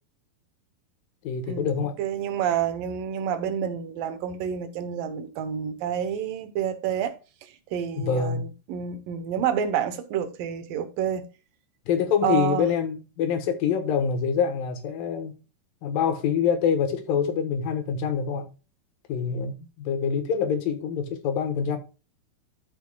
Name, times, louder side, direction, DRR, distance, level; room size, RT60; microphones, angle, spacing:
voice 1, 1.2-2.0 8.0-8.4 11.9-15.3 15.8-18.4 19.1-19.5 19.8-21.8, left 7 dB, 75° left, 2.9 m, -25 dB
voice 2, 2.0-11.2 12.2-12.7, right 9 dB, 75° right, 2.6 m, -29 dB
13.0 x 5.6 x 2.3 m
omnidirectional pair, 4.1 m